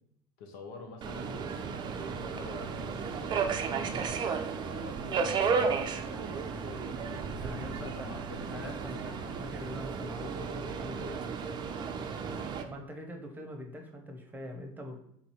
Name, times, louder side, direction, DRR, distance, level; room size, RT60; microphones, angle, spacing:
voice 1, 0.4-7.3 7.6-9.5 12.1-12.5, left 4 dB, 75° left, 3 dB, 0.9 m, -48 dB
Subway metro underground, 1.0-12.6, right 5 dB, 35° right, 0.5 m, -34 dB
voice 2, 7.4-8.1 8.5-11.2 12.6-15.0, left 1 dB, 15° right, 2 dB, 0.9 m, -43 dB
3.8 x 2.7 x 4.5 m, 0.72 s
supercardioid pair, 105°, 12 cm